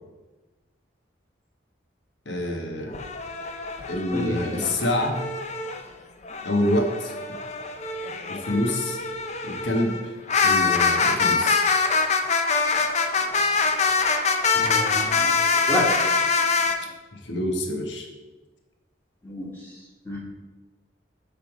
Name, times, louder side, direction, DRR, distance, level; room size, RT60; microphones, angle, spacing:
voice 1, 2.2-3.0 3.9-5.2 6.4-7.4 8.3-9.0 9.4-10.0 10.4-11.6 17.1-18.1, left 1 dB, 75° left, 2 dB, 1.3 m, -26 dB
sound 1, 2.9-5.8 6.2-16.8, left 4 dB, 35° left, 0.5 m, -24 dB
voice 2, 4.1-4.7 14.5-15.3 15.7-15.9 19.2-19.5 20.0-20.2, equal, 10° left, -4 dB, 1.6 m, -29 dB
8.5 x 3.5 x 6.1 m, 1.2 s
head